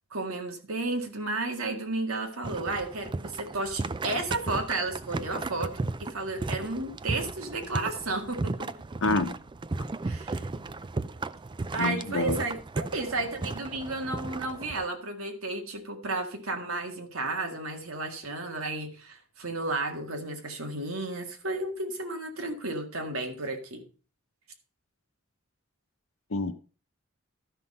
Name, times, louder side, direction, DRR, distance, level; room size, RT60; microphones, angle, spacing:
voice 1, 0.1-5.7 6.0-8.7 10.0-10.5 11.7-23.9, right 2 dB, 90° right, 1.9 m, -33 dB
sound 1, 2.4-14.9, right 3 dB, 20° right, 0.4 m, -35 dB
voice 2, 9.0-9.4 11.8-12.4 26.3-26.5, left 2 dB, 75° left, 1.0 m, -27 dB
12.5 x 5.9 x 5.3 m
head